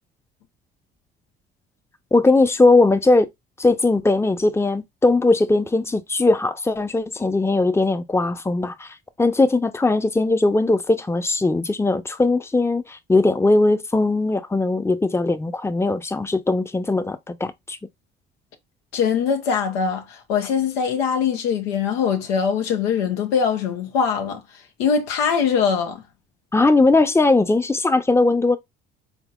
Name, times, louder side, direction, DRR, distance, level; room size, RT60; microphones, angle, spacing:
voice 1, 2.1-3.3 3.6-17.8 26.5-28.6, left 2 dB, 10° left, 0.7 m, -19 dB
voice 2, 18.9-24.4 24.8-26.0, left 6 dB, 85° left, 0.9 m, -22 dB
4.3 x 3.6 x 2.4 m
hypercardioid pair, 55°, 30 cm